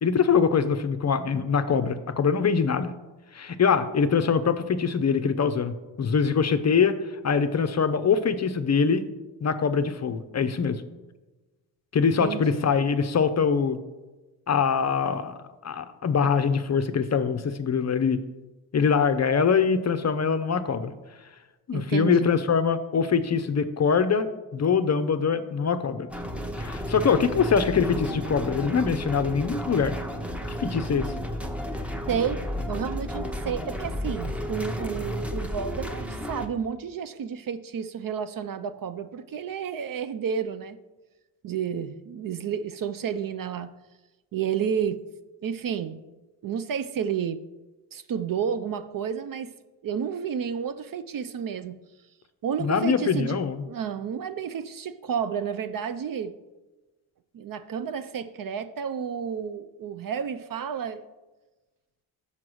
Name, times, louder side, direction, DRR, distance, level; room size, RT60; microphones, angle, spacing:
voice 1, 0.0-2.9 3.3-7.0 7.2-9.0 9.4-10.8 11.9-13.8 14.5-15.3 15.6-18.2 18.7-20.9 21.7-24.3 24.5-26.1 26.6-30.0 30.6-31.1 52.6-53.6, left 6 dB, 35° left, 11 dB, 0.6 m, -23 dB
voice 2, 12.2-12.7 21.7-22.3 32.1-32.4 32.7-40.8 41.4-43.7 44.3-45.0 45.4-46.0 46.4-47.4 47.9-49.5 49.8-51.8 52.4-56.3 57.3-61.1, right 7 dB, 45° right, 12 dB, 0.5 m, -31 dB
sound 1, 26.1-36.5, equal, 5° right, 0.8 m, -32 dB
5.7 x 4.8 x 6.2 m, 1.1 s
supercardioid pair, 60°, 50 cm